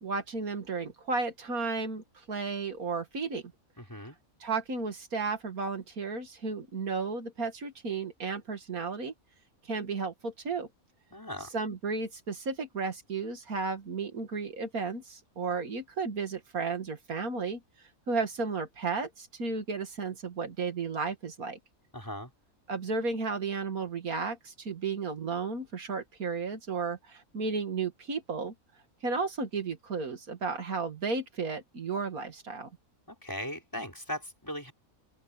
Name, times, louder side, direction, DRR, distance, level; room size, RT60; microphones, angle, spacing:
voice 1, 0.0-3.4 4.4-9.1 9.7-10.7 11.4-17.6 18.1-21.6 22.7-28.5 29.0-32.7, right 4 dB, 80° right, 2.5 m, -33 dB
voice 2, 3.8-4.2 11.1-11.5 21.9-22.3 33.1-34.7, equal, 15° left, 6.1 m, -38 dB
open air
omnidirectional pair, 1.5 m